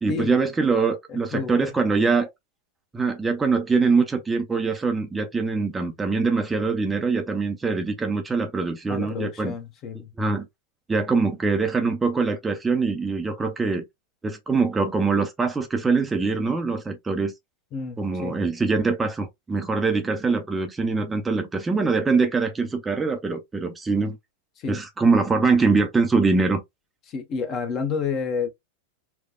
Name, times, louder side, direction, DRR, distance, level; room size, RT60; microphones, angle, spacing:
voice 1, 0.0-2.3 2.9-9.5 10.2-10.5 10.9-13.8 14.2-17.3 18.0-24.2 24.7-26.6, right 4 dB, 15° right, 0.6 m, -23 dB
voice 2, 1.1-1.7 8.9-10.1 17.7-18.4 24.6-24.8 27.1-28.5, left 5 dB, 35° left, 0.9 m, -30 dB
4.5 x 2.2 x 2.3 m
figure-of-eight pair, 90°, 0 cm